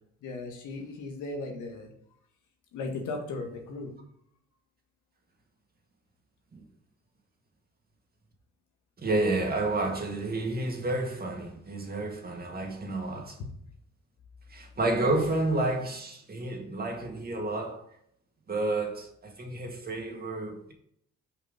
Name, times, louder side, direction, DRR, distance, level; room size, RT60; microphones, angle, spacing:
voice 1, 0.2-1.9 2.7-3.9, left 3 dB, 85° left, 1.7 m, -36 dB
voice 2, 9.0-13.4 14.5-17.8 18.5-20.7, right 2 dB, 30° right, 2.0 m, -30 dB
5.6 x 5.4 x 5.2 m
cardioid pair, 90°, 30 cm